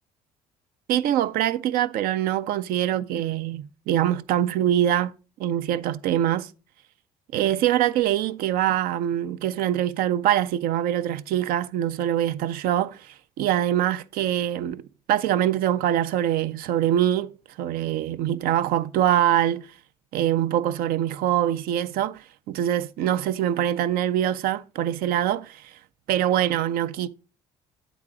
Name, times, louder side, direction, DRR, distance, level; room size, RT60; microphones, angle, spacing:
voice 1, 0.9-5.1 5.4-6.5 7.3-14.8 15.1-17.3 17.6-19.7 20.1-25.7 26.1-27.1, right 11 dB, 60° right, 0.4 m, -24 dB
8.6 x 3.9 x 4.8 m
hypercardioid pair, 50°, 17 cm